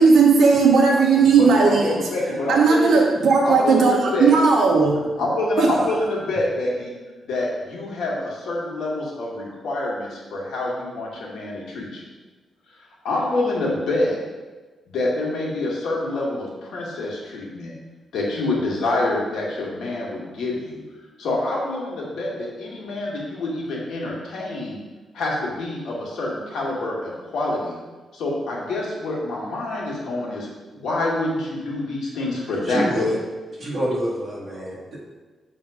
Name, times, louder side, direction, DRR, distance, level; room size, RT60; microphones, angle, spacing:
voice 1, 0.0-1.9 2.5-4.9 5.6-5.7, right 4 dB, 60° right, 0 dB, 1.2 m, -16 dB
voice 2, 1.4-3.1 3.4-4.3 5.2-6.9 7.2-12.0 13.0-14.2 14.9-17.7 18.1-20.8 21.2-24.8 25.1-27.8 28.1-30.5 30.7-33.0, left 2 dB, 80° left, -4 dB, 2.0 m, -26 dB
voice 3, 32.6-33.2 33.6-35.0, equal, 35° right, -8 dB, 2.3 m, -26 dB
6.8 x 3.9 x 5.0 m, 1.3 s
wide cardioid pair, 180°, 0 cm